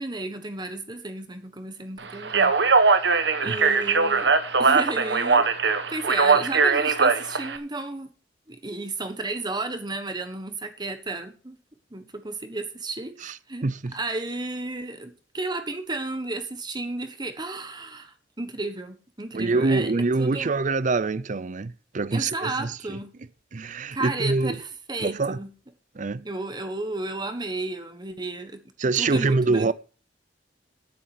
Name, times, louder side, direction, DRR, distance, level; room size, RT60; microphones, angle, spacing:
voice 1, 0.0-2.5 3.4-4.3 4.6-5.5 5.9-8.1 8.5-11.6 11.9-13.7 13.9-19.9 20.2-20.5 22.1-23.1 23.7-25.5 26.2-28.6 28.9-29.7, right 2 dB, 25° right, 1.3 m, -33 dB
Speech, 2.2-7.6, right 4 dB, 70° right, 1.3 m, -20 dB
voice 2, 13.6-13.9 19.3-23.0 23.5-24.6 25.0-25.4 25.9-26.3 28.8-29.7, right 3 dB, 45° right, 0.5 m, -25 dB
9.1 x 8.8 x 6.7 m
head